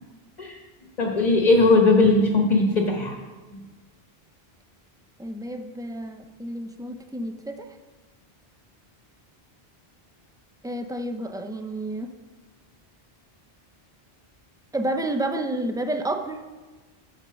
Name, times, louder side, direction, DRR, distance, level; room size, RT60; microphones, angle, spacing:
voice 1, 1.0-3.1 3.5-3.6, left 3 dB, 45° left, 1 dB, 1.2 m, -19 dB
voice 2, 5.2-7.7 10.6-12.1 14.7-16.4, right 1 dB, 5° right, 6 dB, 0.4 m, -30 dB
10.5 x 4.4 x 6.8 m, 1.3 s
omnidirectional pair, 1.0 m